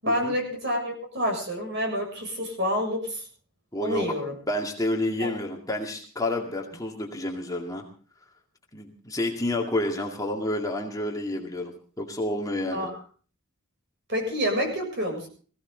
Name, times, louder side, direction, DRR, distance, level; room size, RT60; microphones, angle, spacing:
voice 1, 0.0-3.2 3.8-4.3 5.2-5.4 12.7-13.0 14.1-15.3, equal, 50° right, 3 dB, 6.9 m, -28 dB
voice 2, 3.7-4.2 4.5-7.8 8.7-12.9, left 1 dB, 15° left, 2 dB, 2.1 m, -29 dB
20.5 x 15.5 x 3.9 m, 0.42 s
head